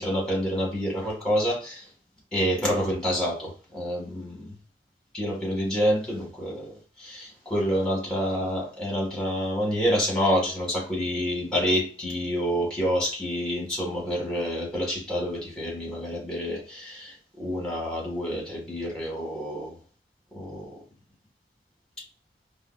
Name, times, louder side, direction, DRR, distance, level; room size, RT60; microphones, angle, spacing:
voice 1, 0.0-1.8 2.3-4.5 5.1-6.7 7.0-19.7 20.3-20.7, equal, 5° left, 1.4 m, -28 dB
4.6 x 2.2 x 2.4 m
head